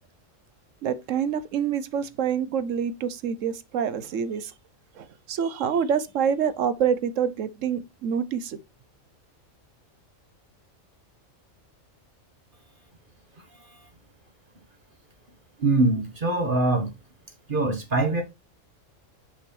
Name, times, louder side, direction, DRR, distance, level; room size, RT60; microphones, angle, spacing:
voice 1, 0.8-4.5 5.0-8.6, right 7 dB, 75° right, 1.1 m, -26 dB
voice 2, 15.6-16.9 17.5-18.2, right 2 dB, 40° right, 1.5 m, -23 dB
6.4 x 5.3 x 4.2 m
omnidirectional pair, 1.3 m